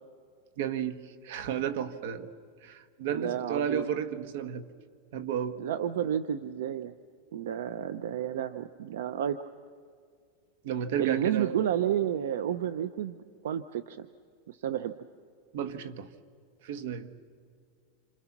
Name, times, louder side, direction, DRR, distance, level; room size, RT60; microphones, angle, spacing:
voice 1, 0.6-2.3 2.6-4.7 5.1-5.6 10.6-11.6 15.5-16.1 16.6-17.2, right 8 dB, 65° right, 12 dB, 1.4 m, -33 dB
voice 2, 3.1-3.8 5.6-6.9 7.3-9.4 11.0-14.1 14.5-14.9, right 10 dB, 85° right, 13 dB, 0.7 m, -31 dB
28.0 x 26.5 x 6.1 m, 2.2 s
supercardioid pair, 160°, 0 cm